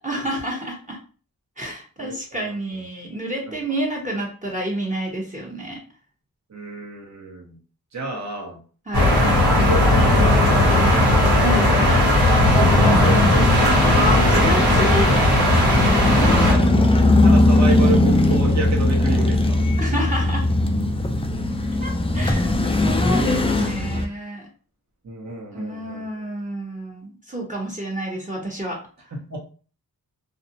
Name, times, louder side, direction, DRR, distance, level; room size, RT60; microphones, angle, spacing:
voice 1, 0.0-1.0 1.6-5.8 8.9-9.2 11.4-12.0 13.9-15.2 16.1-17.2 19.8-20.5 21.8-24.5 25.5-29.1, equal, 20° right, -1 dB, 0.8 m, -29 dB
voice 2, 2.0-2.5 3.5-3.6 6.5-7.6 7.9-8.6 9.6-11.0 12.8-13.9 16.5-16.8 17.2-19.7 25.0-26.0 29.3-29.4, right 3 dB, 45° right, -2 dB, 0.9 m, -30 dB
sound 1, 8.9-16.5, left 1 dB, 90° right, 1.2 m, -17 dB
sound 2, 9.8-24.1, left 2 dB, 15° left, 0.4 m, -20 dB
2.5 x 2.0 x 2.7 m, 0.39 s
cardioid pair, 40°, 38 cm